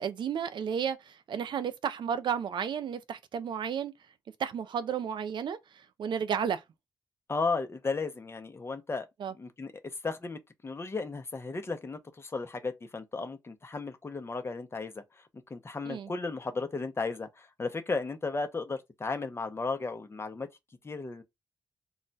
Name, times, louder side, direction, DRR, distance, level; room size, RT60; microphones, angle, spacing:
voice 1, 0.0-3.9 4.4-6.6 9.2-9.3 15.9-16.1, right 7 dB, 75° right, 0.4 m, -33 dB
voice 2, 7.3-9.1 9.4-9.7 10.0-15.0 15.5-20.5 20.8-21.2, left 4 dB, 30° left, 0.6 m, -34 dB
2.3 x 2.1 x 3.9 m
cardioid pair, 80°, 8 cm